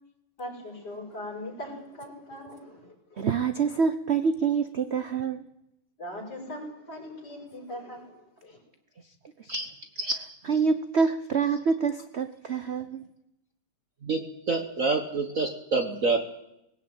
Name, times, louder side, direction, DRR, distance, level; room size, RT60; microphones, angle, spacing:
voice 1, 0.4-3.3 6.0-8.1 8.4-8.6, left 1 dB, 50° left, 2 dB, 6.3 m, -40 dB
voice 2, 3.2-5.4 9.4-9.5 10.4-13.0, right 5 dB, 60° right, 10 dB, 0.6 m, -26 dB
voice 3, 14.0-16.2, right 3 dB, 45° right, 6 dB, 1.5 m, -27 dB
19.0 x 17.5 x 8.9 m, 0.84 s
omnidirectional pair, 2.3 m